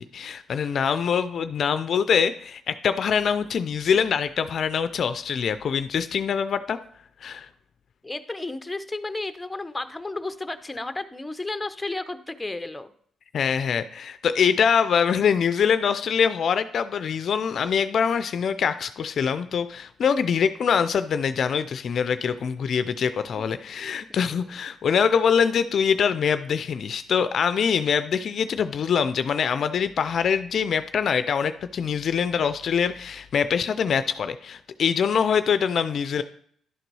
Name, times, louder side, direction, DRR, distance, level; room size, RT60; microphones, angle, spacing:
voice 1, 0.1-6.8 7.2-7.5 13.3-36.2, left 7 dB, 55° left, 11 dB, 0.4 m, -24 dB
voice 2, 8.0-12.9 23.9-24.2, left 2 dB, 10° left, 10 dB, 0.6 m, -33 dB
11.0 x 3.9 x 4.7 m, 0.62 s
cardioid pair, 90°, 0 cm